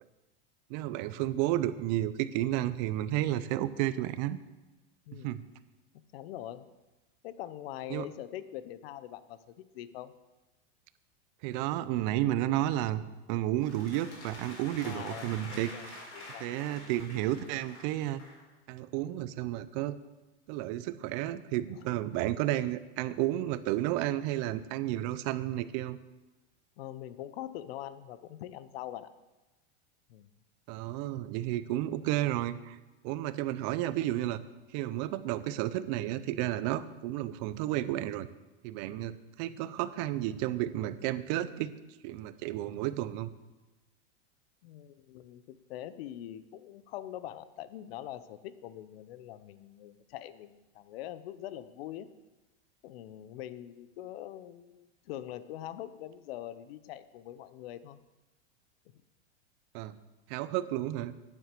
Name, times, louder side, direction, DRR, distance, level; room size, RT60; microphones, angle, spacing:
voice 1, 0.7-4.4 5.2-5.4 7.9-8.1 11.4-13.0 13.3-16.0 16.4-18.2 18.7-20.0 20.5-26.0 30.7-32.8 33.0-34.4 34.7-38.3 38.6-41.7 42.0-43.3 59.7-60.0 60.3-61.1, right 14 dB, 40° right, 14 dB, 0.6 m, -32 dB
voice 2, 5.1-5.4 6.1-6.7 7.2-10.1 14.8-16.9 26.8-29.1 30.1-30.3 44.6-52.1 52.8-58.0, left 12 dB, 60° left, 14 dB, 0.8 m, -43 dB
sound 1, 13.6-18.4, left 2 dB, 80° left, 4.6 m, -48 dB
9.4 x 7.8 x 6.8 m, 1.1 s
supercardioid pair, 150°, 35 cm